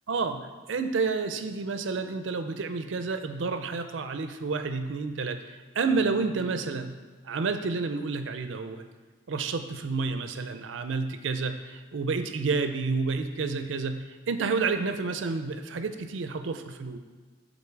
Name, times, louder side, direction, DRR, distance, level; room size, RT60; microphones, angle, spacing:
voice 1, 0.1-5.4 5.7-6.9 7.2-8.8 9.3-14.0 14.3-17.0, right 4 dB, 85° right, 8 dB, 0.5 m, -30 dB
7.2 x 3.9 x 4.5 m, 1.4 s
head